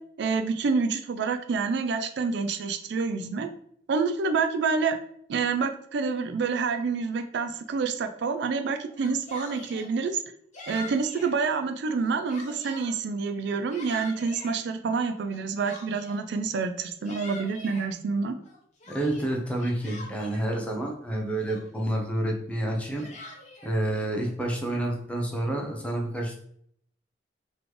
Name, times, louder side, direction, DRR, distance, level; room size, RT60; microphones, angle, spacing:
voice 1, 0.2-3.5 3.9-5.0 5.3-10.2 10.7-18.4, right 4 dB, 70° right, 7 dB, 0.4 m, -27 dB
Yell, 8.9-9.9 10.5-11.3 11.9-12.9 13.4-14.6 15.3-16.3 16.8-17.9 18.4-20.5 21.1-21.2 21.5-21.9 22.7-23.8, left 2 dB, 40° left, 1.0 m, -44 dB
voice 2, 18.9-23.0 23.6-26.4, right 1 dB, 5° left, 0 dB, 0.8 m, -29 dB
4.0 x 3.1 x 3.2 m, 0.67 s
head